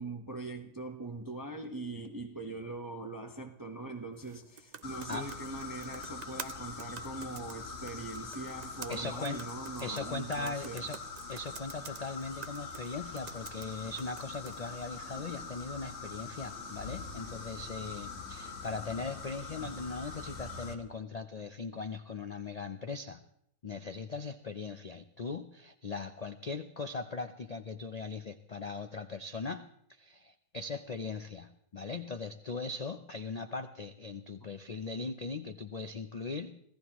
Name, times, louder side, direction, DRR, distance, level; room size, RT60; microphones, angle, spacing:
voice 1, 0.0-10.8 19.6-19.9, right 2 dB, 15° right, 0.9 m, -42 dB
sound 1, 4.2-14.7, right 6 dB, 60° right, 0.4 m, -49 dB
sound 2, 4.8-20.7, left 4 dB, 50° left, 1.6 m, -44 dB
voice 2, 8.9-9.5 9.8-11.0 11.3-23.2 23.6-36.6, left 3 dB, 90° left, 0.3 m, -39 dB
26.0 x 16.0 x 3.0 m
omnidirectional pair, 1.6 m